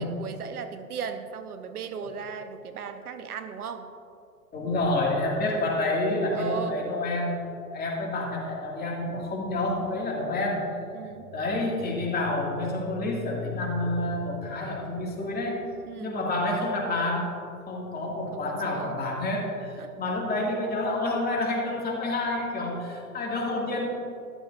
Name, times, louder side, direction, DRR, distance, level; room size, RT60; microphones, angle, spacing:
voice 1, 0.0-3.9 6.3-6.8 10.9-11.3 15.9-16.2 18.3-19.0 19.8-19.9, right 6 dB, 75° right, 9 dB, 0.8 m, -37 dB
voice 2, 4.5-7.4 7.7-10.8 11.3-15.6 16.0-17.4 17.7-23.9, left 2 dB, 20° left, -2 dB, 2.2 m, -28 dB
sound 1, 11.0-15.8, left 6 dB, 60° left, 2.4 m, -41 dB
13.5 x 11.5 x 2.6 m, 2.6 s
figure-of-eight pair, 100°, 45 cm